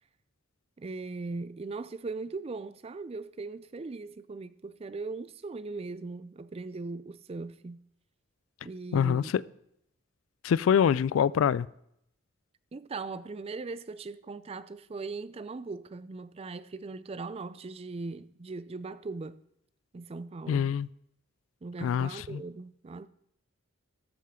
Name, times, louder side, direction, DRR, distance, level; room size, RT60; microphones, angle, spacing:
voice 1, 0.8-7.8 8.6-9.3 12.7-19.4 19.9-20.7 21.6-23.1, right 3 dB, 30° right, 0.4 m, -39 dB
voice 2, 8.9-9.4 10.4-11.7 20.5-20.9 21.8-22.4, left 8 dB, 75° left, 0.3 m, -25 dB
13.0 x 7.5 x 3.7 m
head